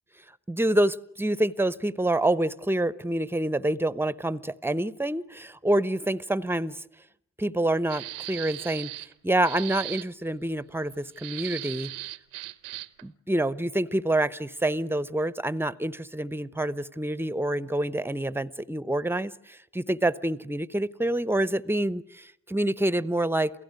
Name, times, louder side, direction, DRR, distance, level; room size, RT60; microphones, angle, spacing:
voice 1, 0.5-6.8 7.4-8.9 9.2-11.9 13.0-23.5, right 1 dB, 5° right, 18 dB, 0.9 m, -27 dB
sound 1, 7.9-9.1 9.4-10.1 11.2-13.0, right 19 dB, 80° right, 0.9 m, -38 dB
28.5 x 17.0 x 9.6 m, 0.82 s
hypercardioid pair, 40°, 35 cm